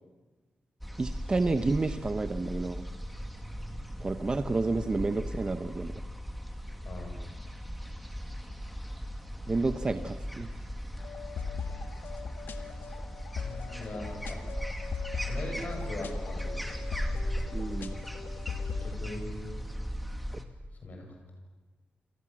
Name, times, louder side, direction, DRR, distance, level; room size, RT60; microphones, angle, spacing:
sound 1, 0.8-20.4, equal, ahead, 2.2 m, -38 dB
voice 1, 1.0-2.9 4.0-5.9 9.5-10.5 17.5-18.0, right 3 dB, 25° right, 8 dB, 0.9 m, -30 dB
voice 2, 6.8-7.2 12.9-13.0 13.4-14.4 15.2-16.9 18.8-19.6 20.8-21.1, left 2 dB, 50° left, 3 dB, 7.8 m, -40 dB
sound 2, 11.0-19.0, left 6 dB, 80° left, 1.9 m, -40 dB
29.0 x 27.5 x 7.5 m, 1.2 s
wide cardioid pair, 165°, 4 cm